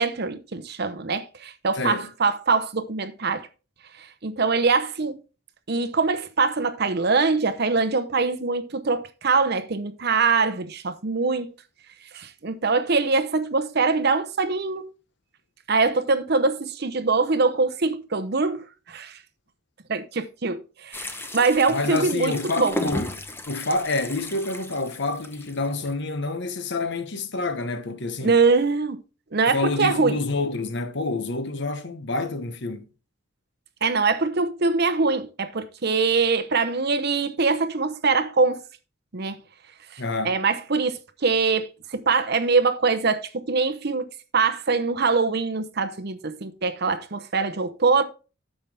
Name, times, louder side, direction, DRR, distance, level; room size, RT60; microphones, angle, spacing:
voice 1, 0.0-3.5 4.0-5.2 5.7-11.5 12.1-14.8 15.7-19.2 19.9-22.8 28.2-29.0 29.3-30.2 33.8-38.6 39.1-39.4 39.9-44.1 44.3-48.0, right 4 dB, 50° right, 0.8 m, -23 dB
voice 2, 1.8-2.1 21.7-23.1 23.5-28.4 29.5-32.8 40.0-40.4, left 3 dB, 60° left, 1.0 m, -28 dB
sound 1, 20.9-25.9, left 1 dB, 10° left, 0.8 m, -35 dB
9.7 x 6.8 x 3.4 m
head